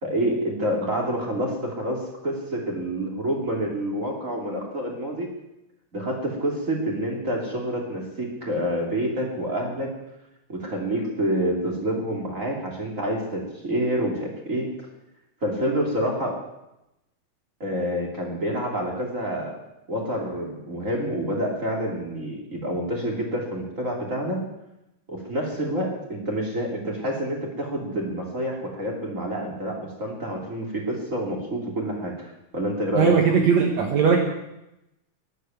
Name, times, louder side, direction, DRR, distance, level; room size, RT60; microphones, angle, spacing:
voice 1, 0.0-5.3 5.9-9.9 10.5-14.7 15.4-16.4 17.6-19.6 19.9-24.4 25.1-32.1 32.5-33.1, equal, 25° right, -1 dB, 3.2 m, -28 dB
voice 2, 33.0-34.2, right 6 dB, 65° right, 1 dB, 2.6 m, -19 dB
13.5 x 11.0 x 9.4 m, 0.90 s
omnidirectional pair, 3.5 m